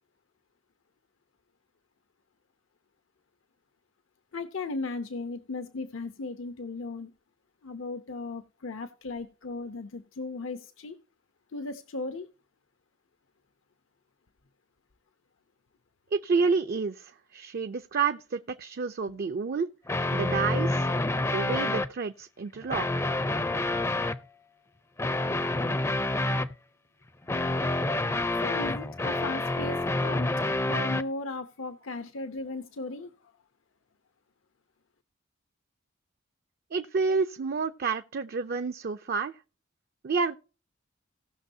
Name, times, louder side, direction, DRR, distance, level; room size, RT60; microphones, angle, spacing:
voice 1, 4.3-7.1 7.6-11.0 11.5-12.3 28.4-30.3 30.7-33.1, left 3 dB, 80° left, 0.8 m, -36 dB
voice 2, 16.1-19.7 20.1-20.9 21.2-23.1 36.7-39.3 40.0-40.3, right 4 dB, 50° right, 0.5 m, -29 dB
sound 1, 19.9-21.9 22.6-24.2 25.0-26.5 27.3-31.0, left 2 dB, 15° left, 0.5 m, -28 dB
18.0 x 6.2 x 2.7 m
head